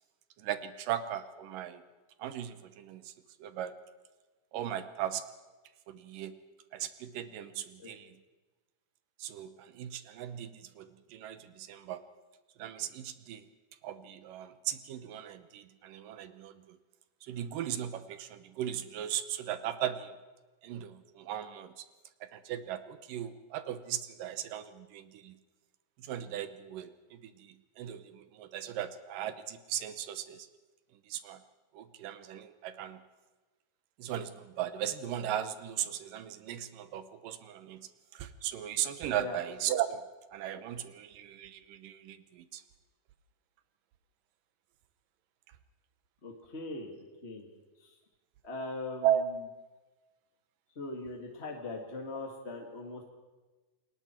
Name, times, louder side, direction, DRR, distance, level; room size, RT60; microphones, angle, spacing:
voice 1, 0.4-1.8 2.2-3.1 3.4-3.7 4.5-5.2 5.9-6.4 6.7-8.1 9.2-12.0 12.6-13.4 13.8-16.8 17.2-20.1 20.6-21.9 22.2-25.4 26.0-30.5 31.1-31.4 31.7-33.0 34.0-40.0 40.3-42.6 49.0-49.2, right 11 dB, 70° right, 12 dB, 2.4 m, -37 dB
voice 2, 46.2-47.5 47.8-47.9 48.4-49.1 50.7-53.0, left 2 dB, 30° left, 1 dB, 1.3 m, -40 dB
29.0 x 21.5 x 4.5 m, 1.2 s
omnidirectional pair, 4.4 m